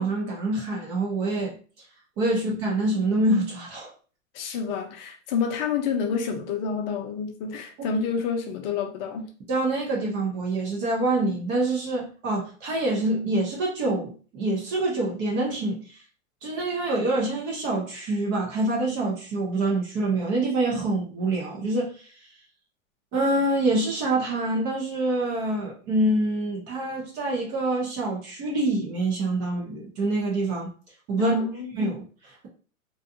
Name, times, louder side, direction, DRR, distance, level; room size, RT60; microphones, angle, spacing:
voice 1, 0.0-1.5 2.2-3.9 7.8-7.9 9.5-15.9 16.4-22.1 23.1-30.7 31.1-31.3 31.7-32.5, right 2 dB, 25° right, 0.7 m, -26 dB
voice 2, 4.3-9.3 31.2-31.7, left 5 dB, 35° left, 0.6 m, -28 dB
2.7 x 2.3 x 2.6 m
hypercardioid pair, 125°, 41 cm